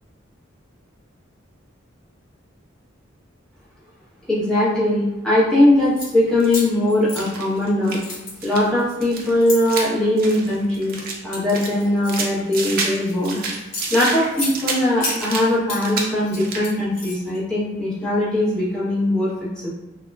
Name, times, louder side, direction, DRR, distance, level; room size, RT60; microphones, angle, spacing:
voice 1, 4.3-8.0 8.4-11.0 11.2-13.4 13.9-19.3 19.6-19.7, left 1 dB, 5° left, -10 dB, 0.8 m, -20 dB
sound 1, 5.8-6.1 6.5-7.7 8.0-9.6 10.2-10.6 11.0-13.1 13.5-14.5 15.0-15.8 16.2-17.4, left 2 dB, 75° left, 1.0 m, -32 dB
Pas dans boue+eau, 6.4-6.7 7.1-8.1 8.4-8.7 9.0-11.2 11.5-13.0 13.2-15.5 15.7-16.1 16.4-16.7, right 4 dB, 50° right, 0.4 m, -29 dB
3.6 x 2.0 x 2.3 m, 0.96 s
head